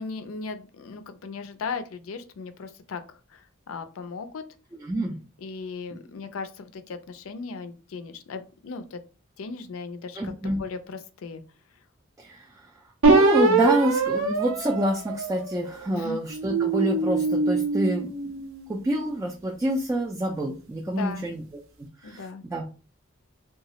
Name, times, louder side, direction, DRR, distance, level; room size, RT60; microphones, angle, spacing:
voice 1, 0.0-3.0 3.3-3.4 3.7-4.4 5.4-9.0 9.4-11.4 16.0-16.2 21.0-21.3 22.0-22.4, left 4 dB, 80° left, 10 dB, 0.4 m, -37 dB
voice 2, 4.7-5.2 10.1-10.6 12.2-12.7 13.1-18.3 18.7-21.6 22.0-22.7, right 1 dB, 15° right, -1 dB, 0.3 m, -27 dB
sound 1, 13.0-15.7 16.3-18.8, right 3 dB, 70° right, 0.6 m, -23 dB
2.9 x 2.3 x 2.9 m, 0.35 s
head